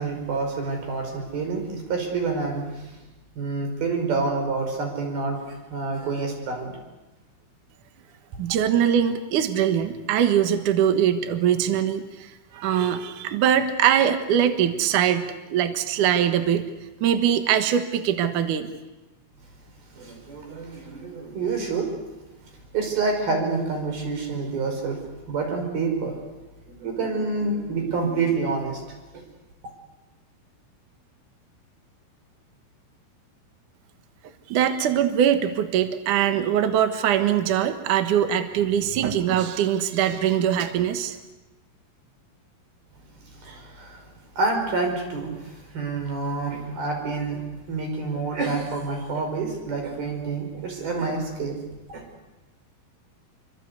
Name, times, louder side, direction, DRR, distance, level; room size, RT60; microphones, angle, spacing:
voice 1, 0.0-2.9 3.4-6.7 19.9-21.9 22.7-25.0 25.3-26.2 26.7-28.8 29.1-29.2 43.4-44.0 44.4-47.4 47.7-51.6 51.9-52.0, right 4 dB, 45° right, 3 dB, 6.8 m, -28 dB
voice 2, 8.4-16.7 17.0-18.7 34.5-41.2, right 9 dB, 75° right, 8 dB, 1.8 m, -22 dB
27.5 x 24.5 x 8.3 m, 1.1 s
omnidirectional pair, 5.9 m